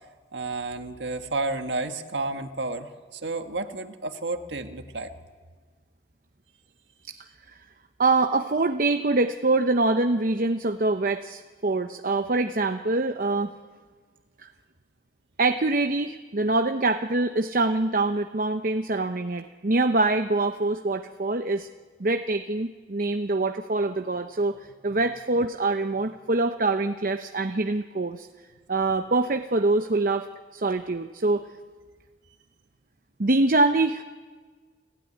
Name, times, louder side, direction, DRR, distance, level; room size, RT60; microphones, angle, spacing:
voice 1, 0.3-5.1, right 2 dB, 85° right, 6 dB, 1.7 m, -31 dB
voice 2, 8.0-13.5 14.4-14.5 15.4-21.7 22.0-24.6 24.8-28.3 28.7-30.3 30.5-31.4 33.2-34.0, right 2 dB, 50° right, 6 dB, 0.8 m, -24 dB
29.5 x 15.5 x 9.9 m, 1.5 s
head